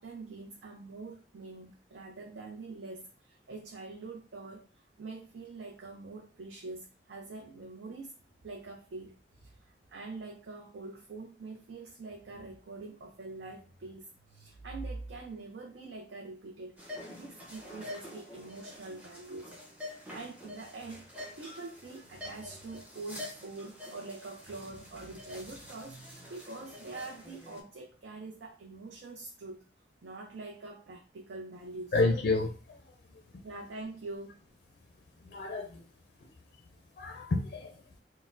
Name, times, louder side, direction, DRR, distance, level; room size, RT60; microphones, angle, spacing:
voice 1, 0.0-8.1 8.4-16.7 17.1-29.6 30.0-31.9 33.4-34.4, right 3 dB, 75° right, 1 dB, 0.5 m, -45 dB
sound 1, 16.8-27.6, left 1 dB, 10° right, 0.8 m, -47 dB
voice 2, 31.9-32.8 35.2-35.8 37.0-37.8, left 3 dB, 55° left, 4 dB, 0.4 m, -30 dB
4.2 x 2.1 x 2.4 m, 0.38 s
head